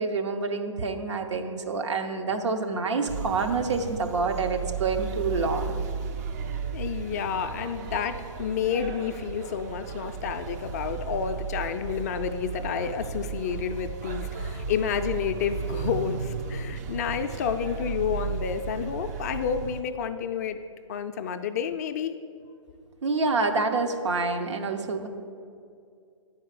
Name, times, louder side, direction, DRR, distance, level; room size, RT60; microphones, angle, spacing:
voice 1, 0.0-5.8 23.0-25.1, right 4 dB, 60° right, 5 dB, 0.9 m, -27 dB
sound 1, 3.1-19.8, right 5 dB, 30° right, 0.4 m, -35 dB
voice 2, 6.7-20.6 20.9-22.1, left 7 dB, 30° left, 8 dB, 0.4 m, -30 dB
9.3 x 4.7 x 6.6 m, 2.3 s
figure-of-eight pair, 130°, 17 cm